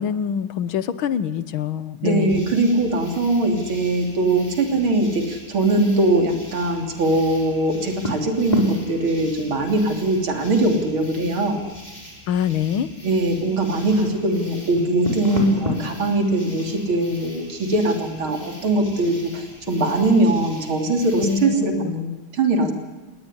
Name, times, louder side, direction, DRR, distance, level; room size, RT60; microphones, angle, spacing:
voice 1, 0.0-2.5 12.3-12.9 21.2-21.9, left 8 dB, 75° left, 14 dB, 1.9 m, -25 dB
voice 2, 2.0-11.6 13.0-22.7, right 2 dB, 70° right, 4 dB, 3.9 m, -21 dB
sound 1, 2.3-21.5, left 2 dB, 20° left, 4.5 m, -36 dB
29.0 x 18.5 x 10.0 m, 1.3 s
omnidirectional pair, 2.3 m